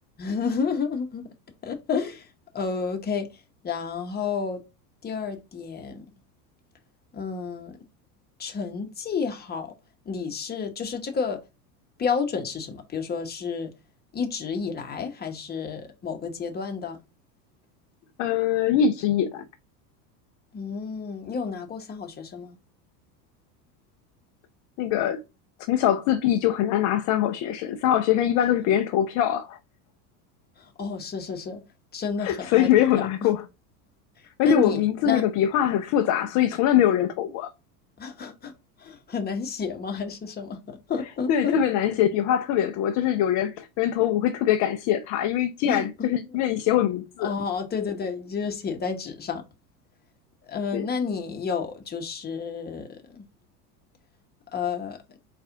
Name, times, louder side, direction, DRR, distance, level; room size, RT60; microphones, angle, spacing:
voice 1, 0.2-1.3 1.6-2.3 2.5-3.3 3.6-4.6 5.0-6.0 7.1-7.8 8.4-9.7 10.1-11.4 12.0-13.7 14.1-17.0 20.5-22.5 30.8-31.6 31.9-33.0 34.4-35.2 38.0-38.5 38.8-41.6 45.7-46.1 47.2-49.4 50.5-53.2 54.5-55.0, left 5 dB, 20° left, 0.9 m, -30 dB
voice 2, 18.2-19.5 24.8-25.2 25.7-29.6 32.2-33.5 34.4-37.5 41.3-47.3 50.7-50.9, left 10 dB, 40° left, 0.4 m, -23 dB
4.1 x 2.4 x 3.6 m
hypercardioid pair, 100°, 48 cm